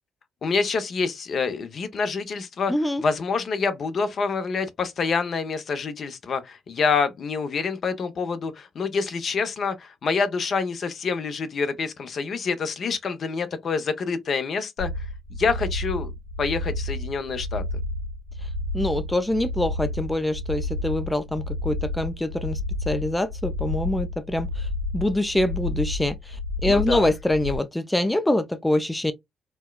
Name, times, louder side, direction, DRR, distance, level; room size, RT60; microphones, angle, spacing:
voice 1, 0.4-2.7 3.0-14.9 15.4-16.1 16.4-17.6 26.6-27.1, left 5 dB, 55° left, 0.7 m, -27 dB
voice 2, 2.7-3.0 18.7-22.6 22.9-24.7 24.9-29.1, left 1 dB, 10° left, 0.5 m, -25 dB
sound 1, 14.8-27.6, left 1 dB, 85° left, 1.6 m, -30 dB
4.3 x 2.2 x 2.3 m
supercardioid pair, 70°, 0 cm